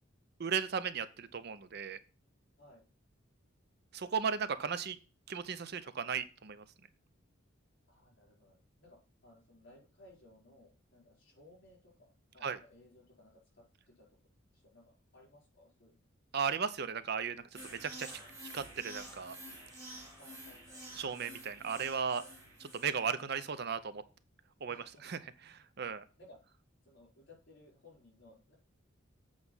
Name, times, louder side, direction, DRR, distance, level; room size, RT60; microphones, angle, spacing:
voice 1, 0.4-2.0 3.9-5.0 5.3-6.6 12.4-12.6 16.3-18.2 18.5-19.4 20.9-22.2 22.6-24.0 24.6-25.2 25.5-26.0, right 6 dB, 55° right, 13 dB, 0.6 m, -36 dB
voice 2, 7.9-9.0 9.2-14.1 14.5-14.8 15.1-16.0 20.2-20.9 24.7-25.0 26.2-26.4 26.8-28.5, left 1 dB, 55° left, -1 dB, 4.7 m, -60 dB
sound 1, 17.5-23.0, right 1 dB, 15° right, 2.7 m, -49 dB
8.0 x 4.8 x 5.6 m, 0.35 s
head